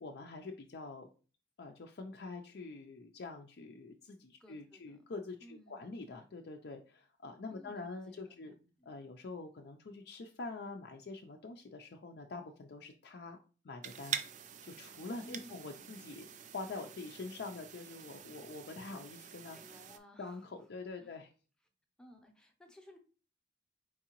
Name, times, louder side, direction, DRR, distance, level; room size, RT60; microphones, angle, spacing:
voice 1, 0.0-1.1 1.6-8.5 8.8-13.4 13.6-14.2 14.6-16.2 16.5-19.6 20.2-21.3, left 3 dB, 60° left, 3 dB, 0.4 m, -45 dB
voice 2, 4.4-5.0 5.4-6.0 7.5-9.1 15.2-16.1 19.5-20.7 21.0-21.2 22.0-23.0, equal, 5° left, 3 dB, 0.7 m, -58 dB
sound 1, 13.8-20.0, right 8 dB, 40° right, 0.4 m, -45 dB
4.5 x 3.6 x 2.9 m, 0.37 s
head